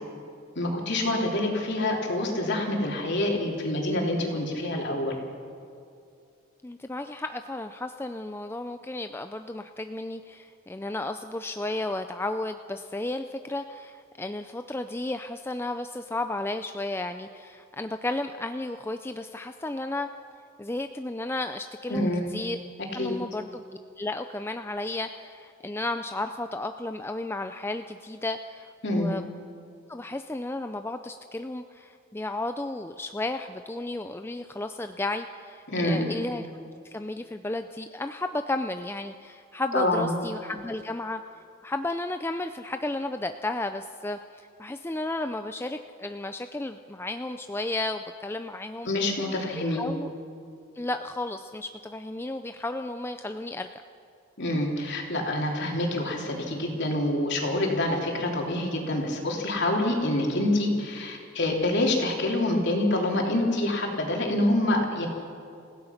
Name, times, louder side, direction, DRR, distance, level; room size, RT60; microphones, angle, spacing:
voice 1, 0.5-5.1 21.9-22.3 23.0-23.2 28.8-29.1 35.7-36.1 39.7-40.1 48.8-49.9 54.4-65.1, left 1 dB, 55° left, 0 dB, 3.3 m, -26 dB
voice 2, 6.6-20.1 20.6-22.6 22.9-23.6 24.0-29.2 29.9-36.5 36.8-41.2 41.6-48.9 49.7-50.1 50.7-53.7, left 2 dB, 10° left, 8 dB, 0.4 m, -33 dB
27.5 x 16.0 x 5.8 m, 2.4 s
head